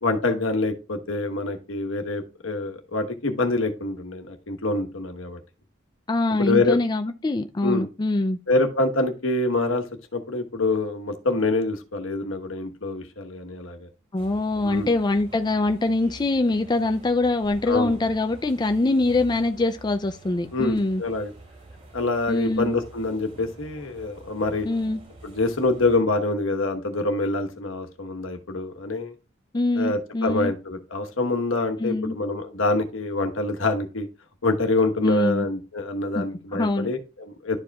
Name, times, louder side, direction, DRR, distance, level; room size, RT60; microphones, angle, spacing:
voice 1, 0.0-5.4 6.4-6.8 7.6-7.9 8.5-9.8 10.1-13.9 14.6-14.9 17.7-17.9 20.5-21.3 21.9-24.7 25.2-29.1 29.7-34.1 34.4-37.6, left 2 dB, 75° left, 1.2 m, -26 dB
voice 2, 6.1-8.4 14.1-21.0 22.3-22.7 24.7-25.0 29.5-30.5 31.8-32.2 35.0-35.5 36.1-36.3 36.5-36.9, left 2 dB, 20° left, 0.4 m, -23 dB
sound 1, 14.1-25.9, right 2 dB, 35° right, 3.3 m, -47 dB
11.5 x 4.9 x 2.3 m
head